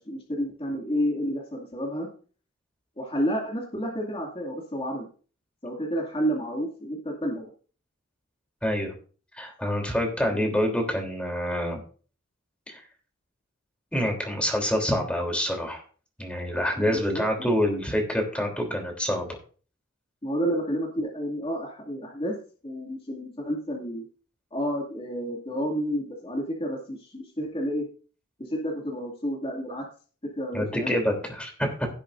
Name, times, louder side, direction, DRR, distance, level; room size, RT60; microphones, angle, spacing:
voice 1, 0.0-2.1 3.0-5.1 5.6-7.5 10.3-10.4 16.8-17.6 20.2-22.3 22.6-24.1 24.5-27.9 28.4-29.9 30.2-31.0, equal, 25° left, -1 dB, 2.4 m, -30 dB
voice 2, 8.6-8.9 9.4-11.8 12.7-12.8 13.9-15.8 16.2-19.3 30.5-31.9, equal, 5° left, 2 dB, 3.3 m, -26 dB
17.0 x 8.3 x 2.6 m, 0.39 s
head